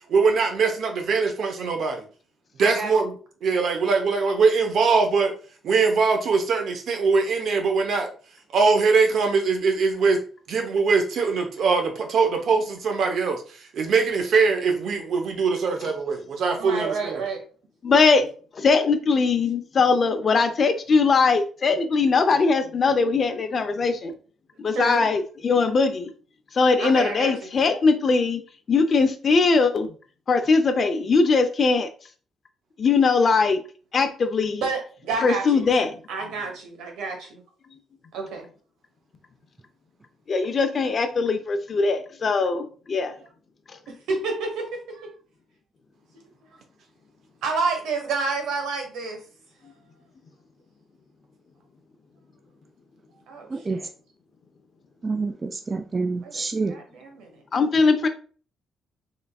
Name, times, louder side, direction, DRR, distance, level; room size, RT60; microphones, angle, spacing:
voice 1, 0.1-2.0 2.6-3.1 3.4-5.3 5.6-8.1 8.5-10.2 10.5-13.4 13.7-17.2, right 4 dB, 65° right, 0.8 m, -22 dB
voice 2, 2.6-3.1 16.6-17.4 24.7-25.0 26.8-27.5 34.6-35.7 36.1-37.4 38.1-38.5 44.1-45.1 47.4-49.2 53.3-53.9 56.2-57.3, right 4 dB, 90° right, 1.1 m, -29 dB
voice 3, 17.8-18.3 18.6-24.1 24.6-26.1 26.5-28.4 28.7-29.9 30.3-31.9 32.8-33.6 33.9-34.6 35.2-35.9 40.3-43.1 57.5-58.1, left 4 dB, 45° left, 0.6 m, -20 dB
voice 4, 53.5-53.8 55.0-56.8, right 3 dB, 30° right, 0.3 m, -27 dB
3.9 x 3.3 x 2.3 m
cardioid pair, 90°, 0 cm